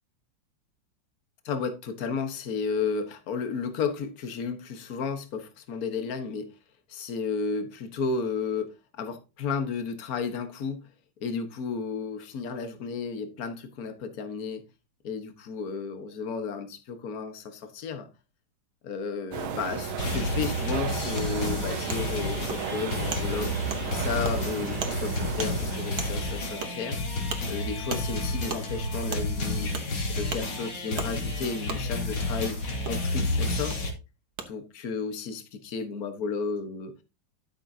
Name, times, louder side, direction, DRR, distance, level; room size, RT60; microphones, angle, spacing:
voice 1, 1.4-6.6 6.9-10.9 11.2-14.6 15.0-18.1 18.8-23.5 23.9-27.0 27.5-29.7 30.2-32.6 32.9-33.8 34.5-36.9, left 5 dB, 50° left, 1.6 m, -33 dB
sound 1, 19.3-26.7, right 6 dB, 80° right, 1.8 m, -35 dB
sound 2, 20.0-33.9, left 2 dB, 85° left, 3.3 m, -31 dB
Wood, 21.2-21.3 21.9-22.0 22.5-22.6 23.1-23.2 23.7-23.8 24.2-24.4 24.8-25.0 25.4-25.5 26.0-26.1 26.6-26.7 27.3-27.4 27.9-28.0 28.5-28.6 29.1-29.2 29.7-29.9 30.3-30.4 31.0-31.1 31.7-31.8 32.8-33.0 33.7-33.8 34.4-34.5, right 6 dB, 55° right, 1.7 m, -34 dB
12.5 x 7.2 x 2.8 m
omnidirectional pair, 2.2 m